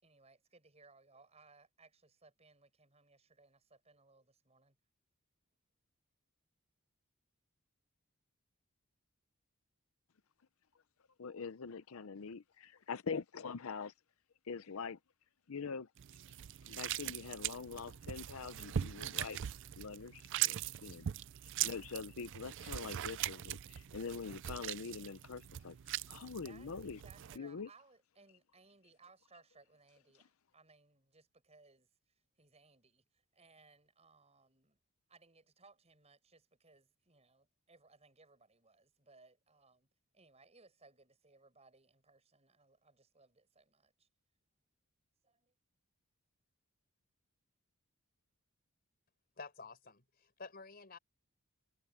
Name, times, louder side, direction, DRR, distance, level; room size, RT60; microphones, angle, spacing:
voice 1, 0.0-4.8 26.4-34.8 35.1-39.9 40.1-44.1 45.2-45.5, right 3 dB, 30° right, 7.1 m, -65 dB
voice 2, 11.2-13.9 14.5-15.0 15.5-15.9 16.6-19.4 19.8-21.1 21.6-27.0 27.4-27.7, left 5 dB, 70° left, 0.6 m, -44 dB
sound 1, 16.0-27.4, right 11 dB, 55° right, 0.4 m, -41 dB
voice 3, 49.4-51.0, left 4 dB, 45° left, 4.3 m, -51 dB
head